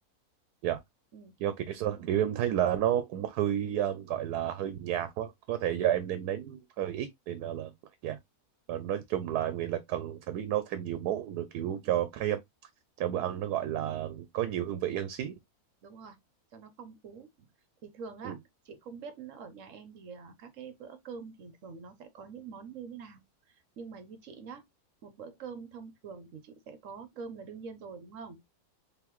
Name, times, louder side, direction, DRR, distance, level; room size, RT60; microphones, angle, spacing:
voice 1, 1.4-7.7 8.0-8.2 8.7-12.4 13.0-15.3 18.2-18.4, right 11 dB, 85° right, 1.1 m, -31 dB
voice 2, 15.8-16.2 16.5-17.5 17.8-18.3 18.6-23.2 23.5-24.7 25.0-28.4, right 5 dB, 60° right, 1.0 m, -45 dB
3.7 x 3.7 x 3.0 m
omnidirectional pair, 1.6 m